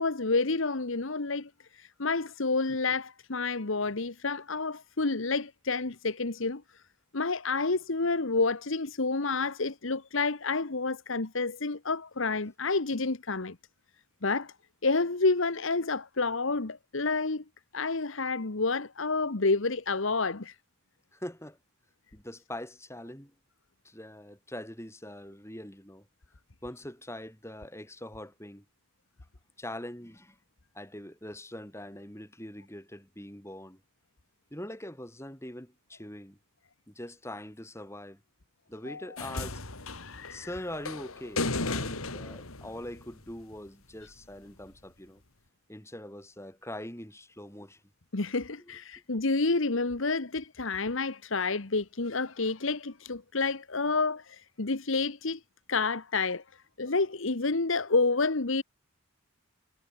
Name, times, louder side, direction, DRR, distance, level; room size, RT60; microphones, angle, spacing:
voice 1, 0.0-1.5 1.8-6.6 7.1-13.6 14.2-14.5 14.8-17.4 17.7-20.5 38.9-39.0 40.0-40.5 48.1-55.4 55.7-56.4 56.8-58.6, left 3 dB, 65° left, 1.3 m, -29 dB
voice 2, 21.1-21.6 22.1-23.3 23.8-26.1 26.6-28.6 29.6-30.4 30.7-33.8 34.5-36.4 36.9-38.2 38.7-39.6 40.3-45.2 45.7-47.8 48.6-48.7, left 1 dB, 15° left, 8.0 m, -43 dB
sound 1, 39.2-43.5 44.7-44.8, left 3 dB, 90° left, 3.6 m, -35 dB
head